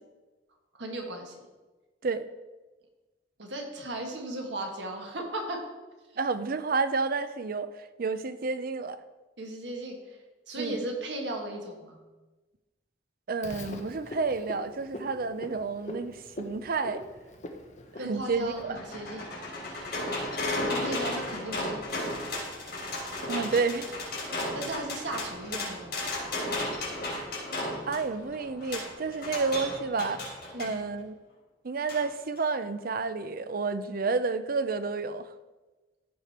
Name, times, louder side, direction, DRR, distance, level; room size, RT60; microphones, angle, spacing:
voice 1, 0.7-1.4 3.4-5.6 9.4-10.2 10.5-12.0 18.0-19.4 20.6-22.5 24.5-26.4 30.5-30.8, right 1 dB, 90° right, 2 dB, 1.7 m, -37 dB
voice 2, 6.2-7.7 8.0-9.0 10.6-10.8 13.3-17.1 18.0-18.8 23.3-23.9 27.9-30.3 30.6-31.2 31.6-35.3, right 4 dB, 55° right, 12 dB, 0.6 m, -30 dB
Frog, 13.4-18.6, left 1 dB, 45° left, 1.1 m, -43 dB
sound 1, 18.2-30.7 31.9-32.0 32.4-32.5, left 1 dB, 60° left, 3.7 m, -34 dB
15.0 x 5.1 x 4.3 m, 1.2 s
head